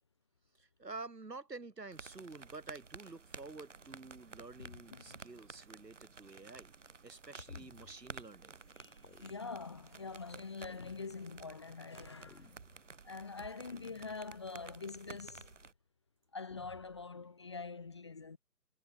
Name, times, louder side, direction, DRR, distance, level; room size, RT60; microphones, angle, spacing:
voice 1, 0.6-6.7 7.0-8.5, right 3 dB, 80° right, 7.6 m, -49 dB
sound 1, 1.9-15.7, right 4 dB, 50° right, 1.4 m, -53 dB
voice 2, 4.6-5.2 8.8-12.5 13.0-15.5 16.3-18.4, left 4 dB, 15° left, 1.7 m, -45 dB
sound 2, 7.5-8.2 9.0-9.8 10.6-11.5 12.2-13.0 13.7-14.4 15.0-15.7 16.5-17.1, left 4 dB, 70° left, 5.3 m, -60 dB
figure-of-eight pair, 175°, 48 cm